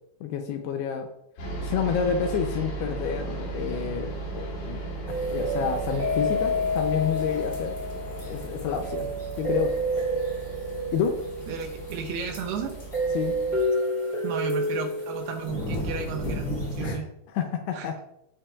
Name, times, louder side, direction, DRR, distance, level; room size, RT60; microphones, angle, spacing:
voice 1, 0.2-1.1 1.6-4.8 5.3-7.8 8.2-9.1 9.4-9.7 10.9-11.3 13.1-13.4 16.8-17.1 17.3-18.0, left 7 dB, 80° left, 5 dB, 2.4 m, -29 dB
sound 1, 1.4-13.6, right 2 dB, 60° left, 4.5 m, -36 dB
sound 2, 5.1-16.9, equal, 25° left, 1.2 m, -29 dB
voice 2, 11.5-12.8 14.2-17.1 17.7-17.9, right 6 dB, 80° right, 4 dB, 2.5 m, -33 dB
15.0 x 5.8 x 2.4 m, 0.82 s
omnidirectional pair, 5.2 m